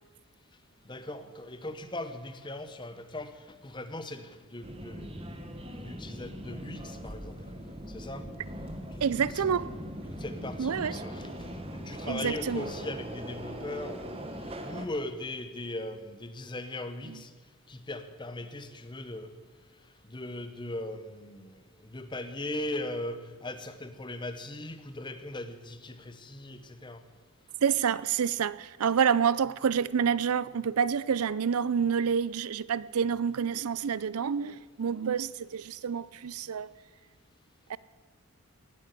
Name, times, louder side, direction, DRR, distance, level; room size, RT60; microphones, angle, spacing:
voice 1, 0.8-7.4 7.9-8.3 8.9-9.0 9.3-9.5 10.1-11.3 11.7-14.1 14.4-17.3 17.7-19.3 20.1-27.0, left 1 dB, 20° left, 10 dB, 1.0 m, -39 dB
Subway metro underground, 4.6-14.9, equal, 25° right, 1.3 m, -40 dB
voice 2, 9.0-9.7 10.6-11.0 12.1-12.7 17.1-17.2 27.6-36.7 37.7-37.8, right 7 dB, 85° right, 20 dB, 0.5 m, -28 dB
18.5 x 8.2 x 8.2 m, 1.4 s
head